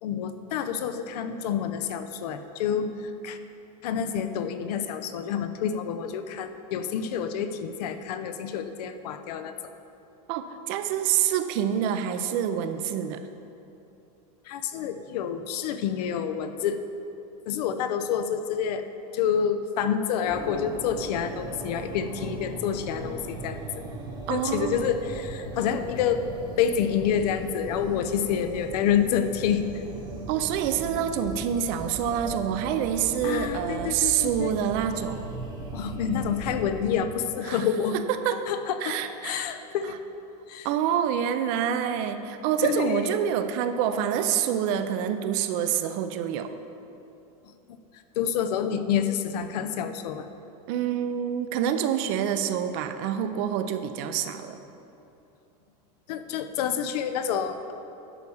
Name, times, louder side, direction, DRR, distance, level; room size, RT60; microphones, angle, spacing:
voice 1, 0.0-3.4 3.8-9.6 14.5-16.8 17.5-18.8 19.1-23.6 24.3-26.2 26.6-29.8 33.2-34.5 35.7-38.0 38.5-39.0 39.2-40.0 40.5-40.7 42.6-43.2 48.2-50.3 56.1-57.7, left 8 dB, 75° left, 9 dB, 0.7 m, -28 dB
voice 2, 10.3-13.3 24.3-24.9 30.3-35.3 37.5-37.6 37.9-38.4 38.8-39.5 40.6-46.5 50.7-54.6, right 9 dB, 50° right, 9 dB, 0.6 m, -27 dB
sound 1, 20.3-37.0, right 2 dB, 20° right, 1.1 m, -38 dB
11.0 x 4.8 x 7.1 m, 2.8 s
supercardioid pair, 145°, 20 cm